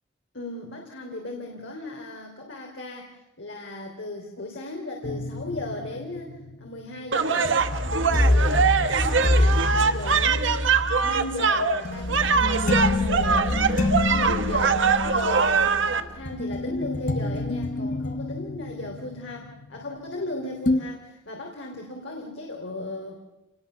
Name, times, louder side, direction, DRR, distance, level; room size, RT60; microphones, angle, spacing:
voice 1, 0.3-23.2, left 2 dB, 85° left, 1 dB, 3.4 m, -36 dB
sound 1, 5.0-20.3 20.7-20.8, left 2 dB, 45° left, 1.3 m, -27 dB
sound 2, 7.1-16.0, right 5 dB, 85° right, 1.3 m, -23 dB
28.0 x 20.0 x 6.9 m, 1.0 s
head